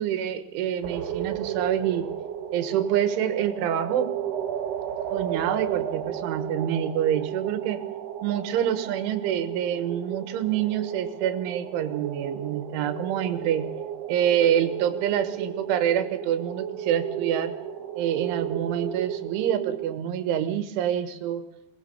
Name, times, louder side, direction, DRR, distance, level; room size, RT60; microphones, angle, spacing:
voice 1, 0.0-2.1 2.5-4.1 5.1-7.8 8.2-13.7 14.1-17.5 18.0-21.4, right 10 dB, 90° right, 11 dB, 3.8 m, -26 dB
sound 1, 0.8-20.0, right 9 dB, 65° right, 3.3 m, -33 dB
21.5 x 20.0 x 7.0 m, 0.90 s
omnidirectional pair, 5.4 m